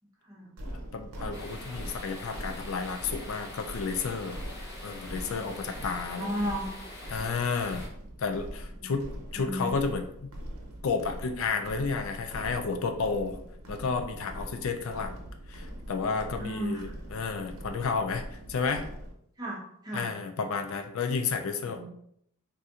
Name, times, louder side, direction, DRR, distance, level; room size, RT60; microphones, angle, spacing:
voice 1, 0.2-0.6 6.1-6.7 8.8-9.0 9.4-9.7 16.4-16.9 19.4-20.2 21.6-21.9, equal, 20° right, -3 dB, 0.7 m, -34 dB
sound 1, 0.6-19.1, equal, 75° right, 0.6 m, -42 dB
voice 2, 0.9-4.4 4.8-6.5 7.1-7.9 8.2-10.3 10.8-13.4 13.7-15.1 15.5-18.2 18.5-18.9 19.9-21.9, left 5 dB, 70° left, 6 dB, 0.4 m, -31 dB
sound 2, 1.3-7.9, left 1 dB, 50° left, 0.8 m, -44 dB
4.1 x 2.6 x 2.4 m, 0.69 s
head